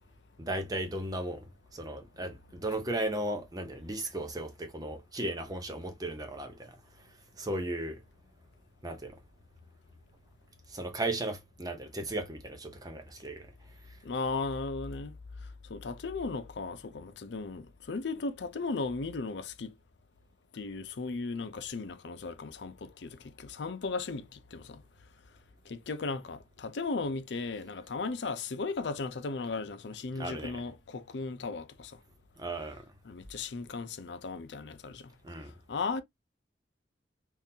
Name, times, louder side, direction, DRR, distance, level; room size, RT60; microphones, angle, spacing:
voice 1, 0.4-6.8 7.4-8.0 8.8-9.2 10.7-13.5 30.2-30.6 32.4-32.9 35.2-35.5, right 1 dB, 20° right, 0.7 m, -36 dB
voice 2, 14.0-15.2 15.7-19.7 20.5-24.8 25.7-32.0 33.0-35.1 35.7-36.0, left 3 dB, 75° left, 0.5 m, -36 dB
3.8 x 2.6 x 2.7 m
head